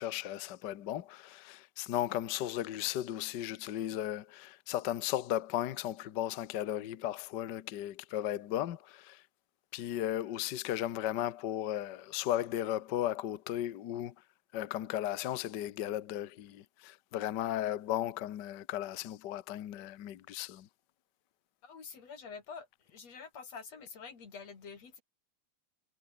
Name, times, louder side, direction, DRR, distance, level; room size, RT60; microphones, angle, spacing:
voice 1, 0.0-9.2 9.7-14.1 14.5-20.7, left 12 dB, 80° left, 0.9 m, -35 dB
voice 2, 21.6-25.0, left 5 dB, 60° left, 4.7 m, -47 dB
omnidirectional pair, 3.4 m